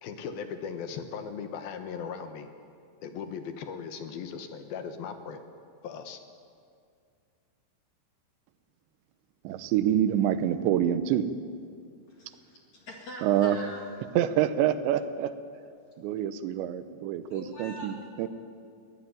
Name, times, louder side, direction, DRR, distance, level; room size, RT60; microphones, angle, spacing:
voice 1, 0.0-2.5 3.0-5.4 5.8-6.2, left 6 dB, 70° left, 7 dB, 2.6 m, -38 dB
voice 2, 9.4-11.3 13.2-13.7 14.0-15.3 16.0-18.3, right 10 dB, 80° right, 11 dB, 3.1 m, -26 dB
voice 3, 12.1-13.8 17.3-17.9, left 1 dB, 45° left, -1 dB, 2.9 m, -43 dB
23.0 x 16.5 x 9.2 m, 2.3 s
omnidirectional pair, 5.2 m